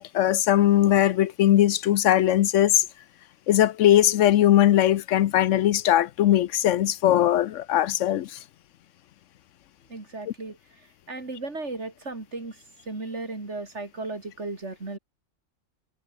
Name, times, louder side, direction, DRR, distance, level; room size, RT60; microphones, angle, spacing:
voice 1, 0.0-2.9 3.5-8.4, left 12 dB, 75° left, 1.0 m, -20 dB
voice 2, 9.9-15.0, right 3 dB, 60° right, 3.9 m, -36 dB
omnidirectional pair, 1.3 m